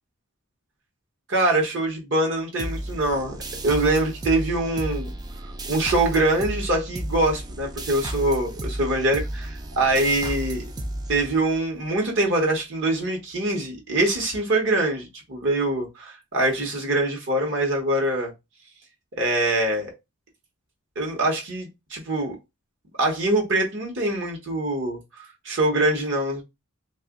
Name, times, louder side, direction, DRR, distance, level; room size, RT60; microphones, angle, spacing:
voice 1, 1.3-3.4 3.6-5.1 5.7-10.6 11.1-18.3 19.1-19.9 21.0-22.4 23.0-25.0 25.4-26.4, right 2 dB, 60° right, 1.0 m, -24 dB
sound 1, 2.6-11.8, right 1 dB, 20° right, 0.3 m, -33 dB
2.9 x 2.4 x 3.6 m
head